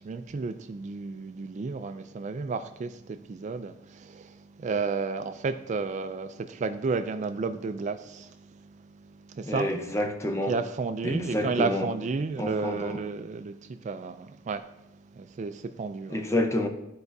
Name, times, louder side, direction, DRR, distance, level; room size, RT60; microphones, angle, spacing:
voice 1, 0.0-8.4 9.3-9.7 10.5-14.6 15.2-16.2, right 4 dB, 35° right, 0.3 m, -32 dB
voice 2, 9.4-10.6 11.0-11.9 12.4-13.0 16.1-16.7, left 1 dB, 15° left, 0.7 m, -28 dB
12.5 x 4.7 x 2.7 m
head